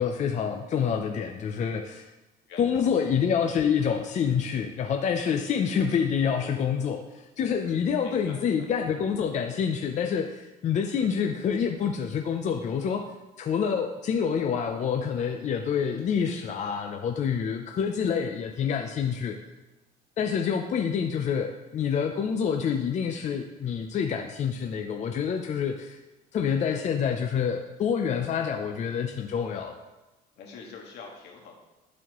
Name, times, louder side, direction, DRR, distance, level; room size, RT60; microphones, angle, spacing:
voice 1, 0.0-2.1 2.6-13.0 13.4-19.4 20.2-26.0 26.3-29.7, left 7 dB, 45° left, 4 dB, 0.5 m, -27 dB
voice 2, 2.5-2.8 8.0-8.6 30.4-31.5, left 5 dB, 80° left, 0 dB, 1.6 m, -45 dB
11.5 x 4.2 x 3.0 m, 1.1 s
cardioid pair, 110°, 17 cm